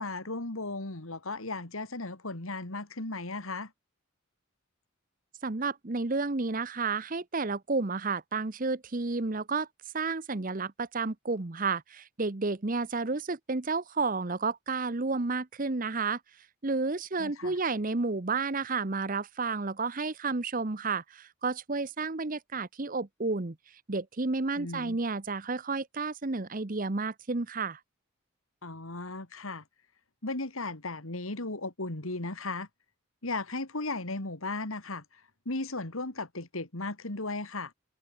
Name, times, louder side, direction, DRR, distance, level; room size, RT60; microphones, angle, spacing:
voice 1, 0.0-3.7 17.2-17.6 24.6-25.0 28.6-29.6 30.2-32.7 33.2-37.7, left 2 dB, 80° left, 2.8 m, -36 dB
voice 2, 5.4-9.7 9.9-16.2 16.6-23.6 23.9-27.8, right 3 dB, 40° right, 0.9 m, -31 dB
head